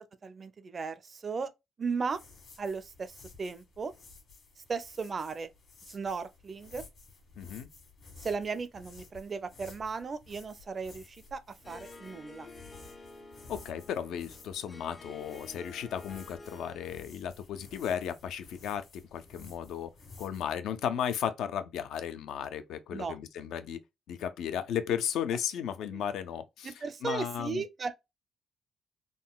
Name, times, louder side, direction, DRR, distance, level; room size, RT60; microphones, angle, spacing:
voice 1, 0.2-1.5 1.8-2.2 2.6-3.9 4.7-5.5 5.9-6.8 8.2-12.5 22.9-23.2 25.9-26.0 26.6-27.9, right 5 dB, 40° right, 0.4 m, -36 dB
sound 1, 2.0-20.4, left 4 dB, 60° left, 1.4 m, -54 dB
voice 2, 7.4-7.7 13.5-19.9 20.2-23.8 24.1-26.7 27.0-27.6, left 9 dB, 80° left, 0.4 m, -35 dB
Harp, 11.6-17.1, left 3 dB, 25° left, 0.5 m, -50 dB
3.7 x 2.1 x 2.3 m
cardioid pair, 90°, 0 cm